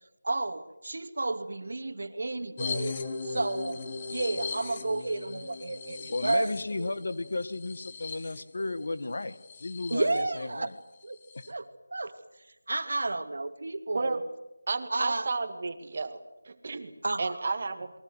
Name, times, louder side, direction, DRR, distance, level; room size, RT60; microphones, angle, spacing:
voice 1, 0.2-3.0 3.2-6.5 6.8-6.9 9.9-10.7 11.0-11.2 11.5-14.2 14.9-15.3 17.0-17.4, right 2 dB, 55° right, 9 dB, 2.7 m, -32 dB
sound 1, 2.6-10.2 10.6-10.7 11.0-11.5, left 4 dB, 15° left, 1.6 m, -38 dB
voice 2, 6.1-10.7 11.3-11.4, left 2 dB, 45° left, 13 dB, 1.6 m, -34 dB
voice 3, 14.7-16.9 17.2-17.9, right 3 dB, 30° right, 9 dB, 2.1 m, -32 dB
29.0 x 23.0 x 8.0 m, 0.91 s
figure-of-eight pair, 180°, 0 cm